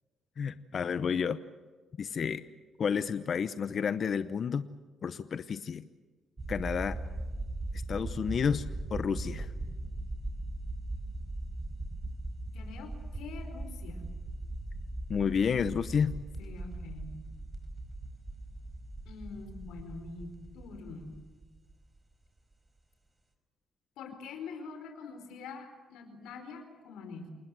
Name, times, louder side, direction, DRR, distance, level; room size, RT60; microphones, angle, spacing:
voice 1, 0.4-1.4 2.0-2.4 2.8-4.7 5.0-5.8 6.5-7.0 7.7-8.6 8.9-9.5 15.1-16.1, left 6 dB, 50° left, 12 dB, 0.9 m, -30 dB
sound 1, 6.4-22.0, right 2 dB, 25° right, 4.9 m, -39 dB
voice 2, 12.5-14.0 16.4-17.2 19.0-21.2 24.0-27.3, left 4 dB, 90° left, 6 dB, 4.4 m, -45 dB
28.0 x 20.0 x 7.6 m, 1.3 s
cardioid pair, 90°, 0 cm